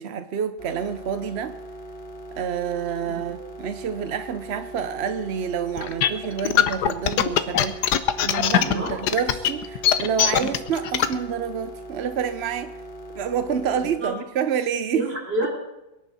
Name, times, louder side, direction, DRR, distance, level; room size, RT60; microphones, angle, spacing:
voice 1, 0.0-1.6 2.4-7.8 8.2-12.8 13.2-15.1, right 7 dB, 60° right, 11 dB, 0.7 m, -28 dB
sound 1, 0.6-14.0, right 1 dB, 35° left, 1.8 m, -40 dB
sound 2, 5.8-11.1, left 10 dB, 70° left, 1.4 m, -21 dB
voice 2, 8.5-9.0 13.7-14.1 14.9-15.5, right 1 dB, 30° right, -1 dB, 4.9 m, -29 dB
23.0 x 11.0 x 4.1 m, 0.95 s
omnidirectional pair, 1.9 m